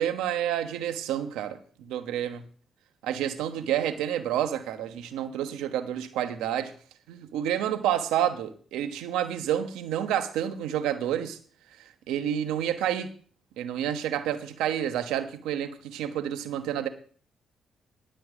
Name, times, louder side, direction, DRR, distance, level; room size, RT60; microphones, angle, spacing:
voice 1, 0.0-2.4 3.0-6.7 7.1-11.4 11.8-13.1 13.6-16.9, right 10 dB, 85° right, 1.2 m, -29 dB
11.5 x 5.7 x 8.2 m
supercardioid pair, 65°, 0 cm